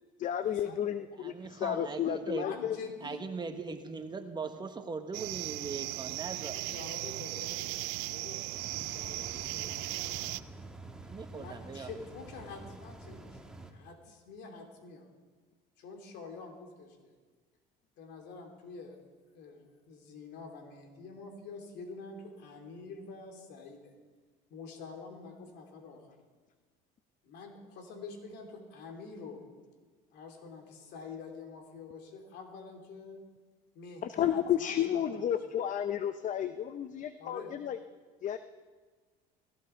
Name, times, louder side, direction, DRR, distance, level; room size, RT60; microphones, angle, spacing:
voice 1, 0.2-2.8 34.0-37.8 38.2-38.4, left 10 dB, 45° left, 11 dB, 0.7 m, -32 dB
voice 2, 1.2-2.5 3.0-6.7 11.1-11.9, right 4 dB, 25° right, 7 dB, 1.3 m, -40 dB
voice 3, 2.3-3.2 6.4-8.4 8.8-10.3 11.3-15.1 15.8-17.1 18.0-19.0 19.3-23.9 24.5-26.2 27.2-29.4 30.1-33.2 33.7-35.4 37.2-37.5, left 4 dB, 65° left, 3 dB, 3.1 m, -47 dB
sound 1, 5.1-10.4, right 20 dB, 80° right, 0.5 m, -37 dB
sound 2, 8.5-13.7, right 2 dB, 5° right, 1.8 m, -48 dB
17.5 x 16.0 x 4.5 m, 1.4 s
supercardioid pair, 105°, 18 cm